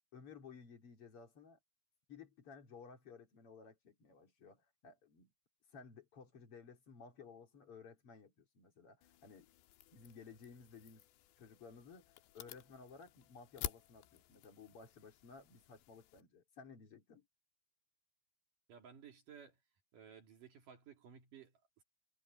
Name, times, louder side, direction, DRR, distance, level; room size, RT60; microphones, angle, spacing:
voice 1, 0.1-1.6 2.1-5.3 5.7-9.5 9.9-11.1 11.4-17.3, left 5 dB, 35° left, 3.3 m, -56 dB
sound 1, 9.0-16.2, left 14 dB, 80° left, 3.0 m, -51 dB
voice 2, 18.7-19.6 19.9-21.8, right 7 dB, 50° right, 3.4 m, -57 dB
omnidirectional pair, 5.3 m